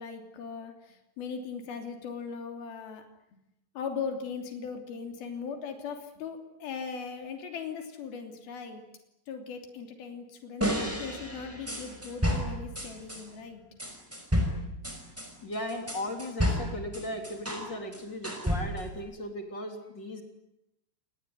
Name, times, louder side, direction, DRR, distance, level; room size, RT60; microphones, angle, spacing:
voice 1, 0.0-3.1 3.7-8.8 9.3-13.8, left 6 dB, 65° left, 5 dB, 4.9 m, -39 dB
sound 1, 10.6-13.2 13.8-17.7 17.9-19.0, equal, 5° right, 5.1 m, -31 dB
voice 2, 15.4-20.2, left 1 dB, 30° left, 4 dB, 3.7 m, -37 dB
27.0 x 20.0 x 9.7 m, 0.86 s
omnidirectional pair, 4.7 m